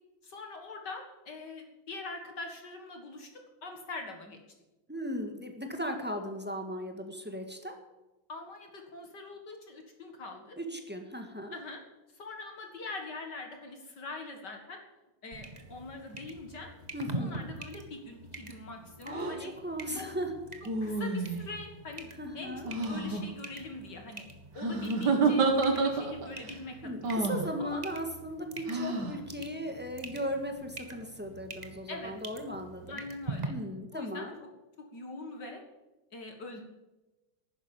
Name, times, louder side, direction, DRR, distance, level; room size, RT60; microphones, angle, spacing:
voice 1, 0.2-4.4 8.3-10.6 11.5-11.8 12.1-14.8 15.2-16.7 17.1-19.5 20.0-20.1 20.8-24.2 24.5-27.2 27.6-27.8 31.9-32.1 32.9-33.5 33.9-34.3 34.9-35.6 36.1-36.6, left 3 dB, 55° left, 3 dB, 2.3 m, -43 dB
voice 2, 4.9-7.7 10.6-11.5 16.9-17.4 19.0-20.3 22.2-22.7 26.8-33.0 33.5-34.4, equal, 5° right, 4 dB, 1.6 m, -37 dB
sound 1, 15.3-33.5, right 2 dB, 25° right, 1.3 m, -45 dB
sound 2, 19.1-19.3 20.6-21.5 22.6-23.2 24.6-26.3 27.0-27.5 28.7-29.1, right 3 dB, 55° right, 2.4 m, -29 dB
12.0 x 10.0 x 8.7 m, 1.1 s
omnidirectional pair, 2.3 m